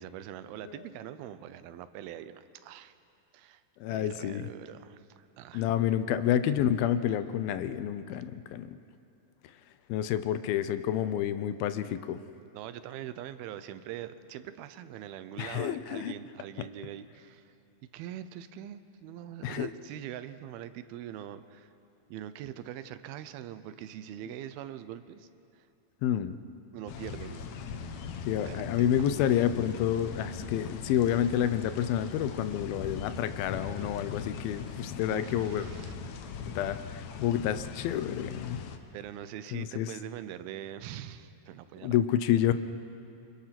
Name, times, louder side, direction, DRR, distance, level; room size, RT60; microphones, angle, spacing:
voice 1, 0.0-2.9 3.3-3.6 3.9-5.6 12.5-17.5 17.9-21.7 22.1-25.7 26.7-27.5 28.3-28.9 35.1-35.9 38.9-42.0, right 11 dB, 90° right, 12 dB, 2.7 m, -43 dB
voice 2, 3.8-4.5 5.5-8.8 9.9-12.2 15.4-16.2 19.4-19.7 26.0-26.4 28.3-35.7 36.6-38.6 39.5-39.9 41.8-42.5, left 10 dB, 85° left, 12 dB, 2.6 m, -29 dB
sound 1, 26.9-38.8, left 6 dB, 65° left, 2.0 m, -40 dB
27.5 x 25.0 x 6.0 m, 2.6 s
omnidirectional pair, 4.2 m